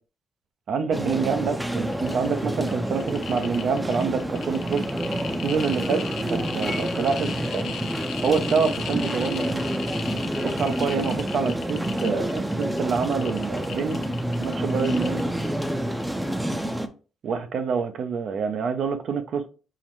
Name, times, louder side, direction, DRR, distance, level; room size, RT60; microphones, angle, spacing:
voice 1, 0.7-4.9 5.4-6.0 6.3-7.7 8.2-9.7 10.4-14.0 14.4-15.3 17.2-19.5, right 5 dB, 65° right, 0.5 m, -27 dB
sound 1, 0.9-16.9, right 1 dB, 5° right, 0.5 m, -28 dB
sound 2, 1.9-2.3 2.6-15.7 15.9-16.0, left 7 dB, 75° left, 0.6 m, -37 dB
5.6 x 2.1 x 3.0 m
cardioid pair, 90°, 0 cm